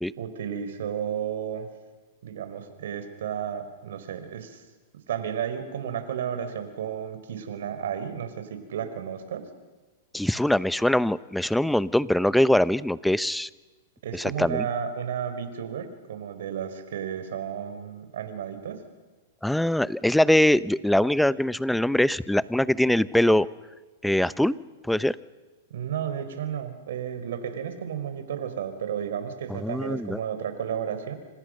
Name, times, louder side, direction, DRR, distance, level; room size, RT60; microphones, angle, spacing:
voice 1, 0.2-1.7 2.2-4.6 5.1-9.4 14.0-18.8 25.7-31.1, right 8 dB, 75° right, 9 dB, 4.8 m, -32 dB
voice 2, 10.1-13.5 14.1-14.7 19.4-23.5 24.0-24.6 24.9-25.2 29.5-30.2, left 1 dB, ahead, 18 dB, 0.8 m, -22 dB
30.0 x 27.0 x 6.6 m, 1.3 s
hypercardioid pair, 125°, 0 cm